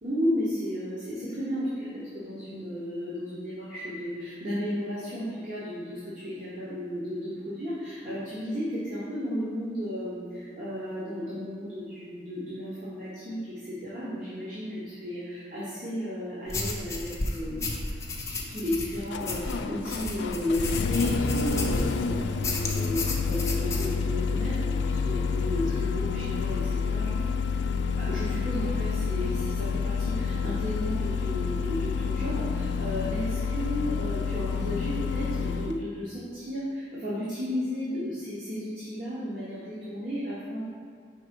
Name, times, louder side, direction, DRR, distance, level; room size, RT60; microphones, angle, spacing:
voice 1, 0.0-17.6 18.5-27.1 28.0-40.6, equal, 45° right, -10 dB, 1.2 m, -33 dB
sound 1, 16.5-22.0 22.4-23.9, left 2 dB, 15° left, 0.5 m, -33 dB
Engine starting, 17.4-35.8, left 5 dB, 80° left, 0.3 m, -29 dB
5.2 x 3.6 x 5.3 m, 2.2 s
head